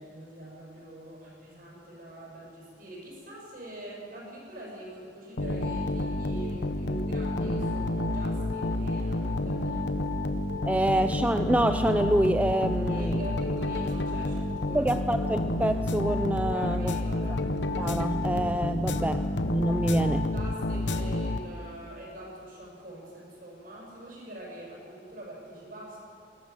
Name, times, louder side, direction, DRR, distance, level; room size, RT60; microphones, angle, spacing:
voice 1, 0.0-10.0 12.8-15.0 16.5-17.4 18.9-19.1 20.3-26.0, right 1 dB, 50° right, -3 dB, 7.7 m, -44 dB
sound 1, 5.4-21.8, left 1 dB, 65° left, 1.1 m, -29 dB
voice 2, 10.7-13.2 14.7-17.0 17.8-19.2 19.5-20.3, right 1 dB, 10° right, 9 dB, 0.4 m, -26 dB
22.0 x 17.5 x 7.5 m, 2.3 s
head